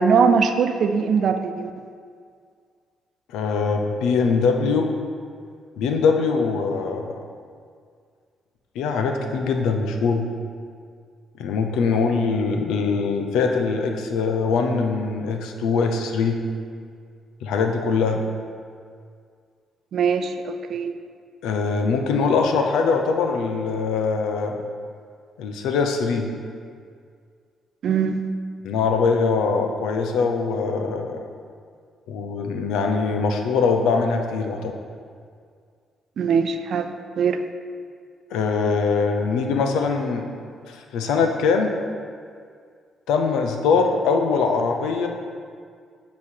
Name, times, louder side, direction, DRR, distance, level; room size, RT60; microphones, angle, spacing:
voice 1, 0.0-1.7 19.9-20.9 27.8-28.2 36.2-37.4, right 6 dB, 65° right, 8 dB, 0.5 m, -21 dB
voice 2, 3.3-4.9 5.8-7.1 8.7-10.3 11.4-16.4 17.4-18.2 21.4-24.6 25.4-26.3 28.6-31.2 32.1-34.7 38.3-40.2 40.7-41.8 43.1-45.1, left 4 dB, 90° left, 4 dB, 0.7 m, -22 dB
8.4 x 3.1 x 6.3 m, 2.1 s
cardioid pair, 90°, 0 cm